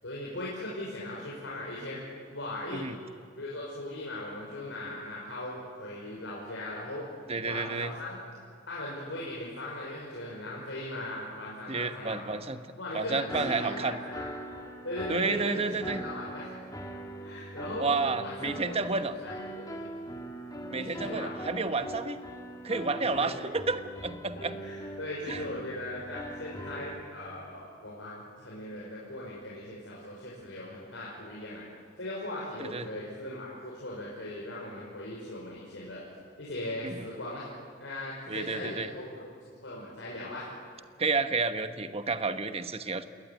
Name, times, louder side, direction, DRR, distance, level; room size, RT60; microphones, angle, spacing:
voice 1, 0.0-2.0 2.3-2.8 3.3-7.1 7.4-8.2 8.7-12.2 12.8-14.3 14.8-16.5 17.2-17.9 18.2-19.9 20.7-21.4 22.9-23.5 24.3-31.6 32.0-36.0 36.4-37.5 37.8-40.5, left 1 dB, 80° left, -5 dB, 5.9 m, -39 dB
voice 2, 7.3-7.9 11.7-12.6 12.9-14.0 15.1-16.1 17.8-19.2 20.7-22.2 22.6-24.5 25.3-25.5 32.6-32.9 36.8-37.1 38.3-38.9 41.0-43.0, right 3 dB, 30° right, 9 dB, 1.3 m, -31 dB
sound 1, 13.3-27.0, right 1 dB, 20° left, 2.5 m, -41 dB
27.5 x 21.0 x 9.6 m, 2.1 s
head